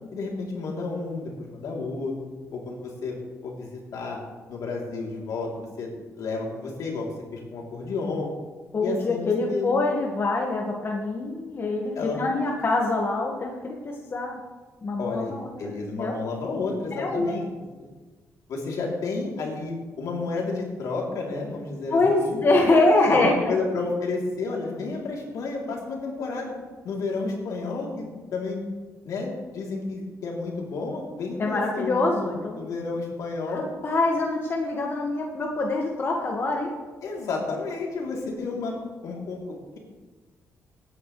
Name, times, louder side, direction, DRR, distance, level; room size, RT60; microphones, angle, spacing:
voice 1, 0.1-2.1 2.5-3.2 3.4-4.2 4.5-5.5 5.8-5.9 6.2-8.3 8.8-9.7 11.9-12.7 15.0-15.3 15.6-17.4 17.8-17.9 18.5-22.4 23.0-26.5 26.8-28.6 29.0-33.7 37.0-38.7 39.0-39.8, left 3 dB, 75° left, -2 dB, 3.2 m, -31 dB
voice 2, 8.7-14.4 14.8-15.7 16.0-16.1 17.0-17.4 21.9-23.5 31.4-32.7 33.5-36.7, left 2 dB, 40° left, 0 dB, 1.7 m, -24 dB
18.0 x 9.6 x 3.2 m, 1.3 s
cardioid pair, 80°, 6 cm